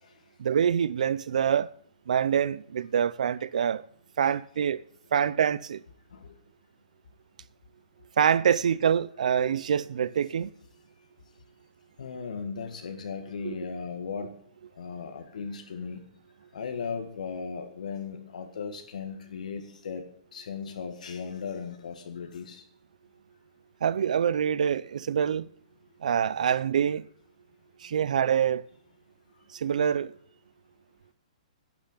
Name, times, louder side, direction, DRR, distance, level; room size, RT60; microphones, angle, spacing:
voice 1, 0.4-1.7 2.1-3.8 4.2-4.8 5.1-5.8 8.2-10.5 13.4-13.5 23.8-25.5 26.0-27.1 27.8-28.7 29.5-30.1, right 8 dB, 75° right, 0.6 m, -25 dB
voice 2, 12.0-14.3 14.8-16.0 16.5-20.1 20.3-22.6, left 5 dB, 75° left, 1.7 m, -37 dB
11.5 x 6.8 x 8.0 m
hypercardioid pair, 165°, 4 cm